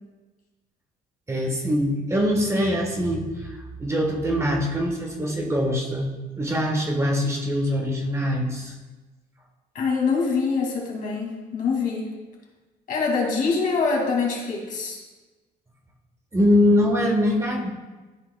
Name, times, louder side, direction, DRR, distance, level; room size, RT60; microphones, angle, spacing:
voice 1, 1.3-6.1 6.4-8.7 16.3-17.7, left 1 dB, 15° right, 0 dB, 1.2 m, -23 dB
voice 2, 9.7-12.1 12.9-15.0, left 4 dB, 55° left, -1 dB, 2.2 m, -24 dB
13.5 x 4.6 x 2.2 m, 1.2 s
cardioid pair, 110°, 17 cm